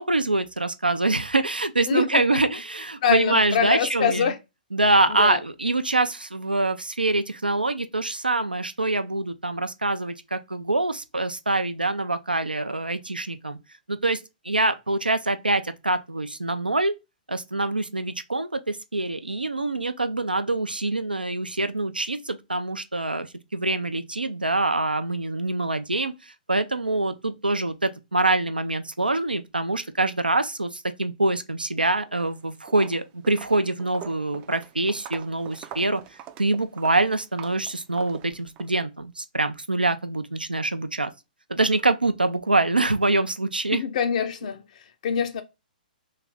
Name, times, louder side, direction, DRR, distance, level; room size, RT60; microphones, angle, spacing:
voice 1, 0.0-4.3 4.7-13.6 13.9-16.9 17.3-23.3 23.5-36.0 36.4-41.1 41.5-43.8, right 2 dB, 90° right, 0.4 m, -25 dB
voice 2, 1.9-2.4 3.0-4.4 5.1-5.4 43.7-44.6 45.0-45.4, left 7 dB, 50° left, 0.6 m, -24 dB
Walk footsteps, 32.1-32.4 32.7-38.7, right 10 dB, 25° right, 0.4 m, -43 dB
3.2 x 2.5 x 3.2 m
figure-of-eight pair, 120°, 5 cm